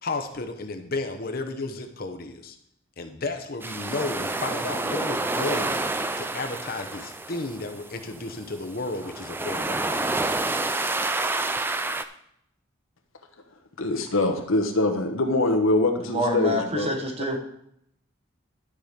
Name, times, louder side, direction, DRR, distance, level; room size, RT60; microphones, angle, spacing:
voice 1, 0.0-2.6 3.0-5.8 6.2-10.0, left 3 dB, 45° left, 7 dB, 0.9 m, -33 dB
sound 1, 3.6-12.0, right 2 dB, 10° right, 0.3 m, -29 dB
voice 2, 13.8-16.9, left 2 dB, 80° left, 5 dB, 1.2 m, -23 dB
voice 3, 16.0-17.4, equal, 30° right, 2 dB, 1.2 m, -27 dB
11.5 x 5.0 x 5.2 m, 0.74 s
head